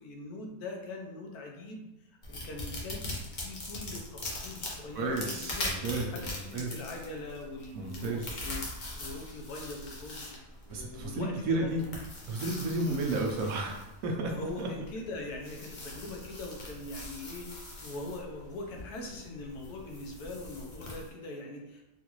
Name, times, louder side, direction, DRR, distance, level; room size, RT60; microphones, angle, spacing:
voice 1, 0.0-5.7 6.1-8.7 9.0-10.4 10.7-11.8 14.2-21.8, left 2 dB, 80° left, 1 dB, 1.2 m, -42 dB
sound 1, 2.2-21.1, left 1 dB, 45° left, 0.6 m, -42 dB
voice 2, 4.9-6.7 7.7-8.3 10.7-11.8 12.3-13.8 14.0-14.7, right 2 dB, 70° right, 1 dB, 1.0 m, -32 dB
3.8 x 2.4 x 3.0 m, 0.96 s
omnidirectional pair, 1.6 m